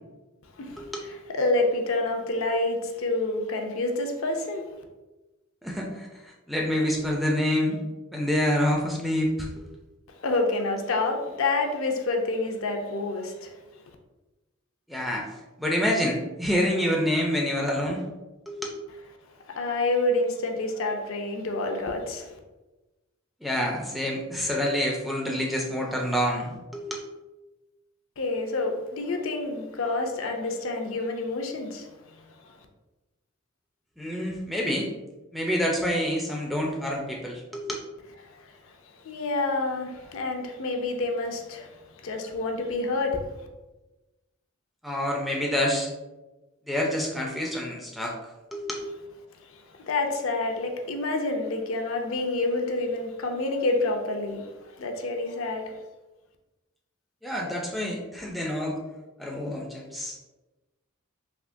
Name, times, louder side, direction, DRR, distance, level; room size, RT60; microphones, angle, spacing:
voice 1, 0.6-4.7 10.2-13.5 19.5-22.3 28.2-32.5 39.0-43.2 49.5-55.8, left 2 dB, 65° left, 3 dB, 0.5 m, -28 dB
voice 2, 5.6-6.1 6.5-7.8 8.1-9.3 14.9-15.3 15.6-18.0 18.5-18.6 23.4-27.0 34.0-34.9 35.3-37.7 44.8-45.9 46.7-48.1 48.5-48.8 57.2-58.7 59.2-60.2, equal, ahead, -2 dB, 0.3 m, -27 dB
3.5 x 2.8 x 2.5 m, 1.1 s
head